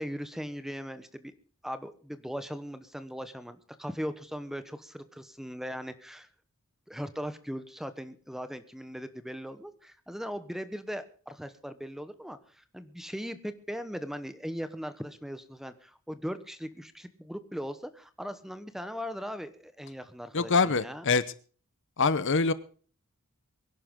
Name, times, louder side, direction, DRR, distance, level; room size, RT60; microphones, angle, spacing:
voice 1, 0.0-1.3 1.6-6.3 6.9-21.1, equal, ahead, 12 dB, 1.1 m, -39 dB
voice 2, 20.3-21.2 22.0-22.5, left 4 dB, 55° left, 15 dB, 0.9 m, -24 dB
23.5 x 11.0 x 3.8 m, 0.42 s
head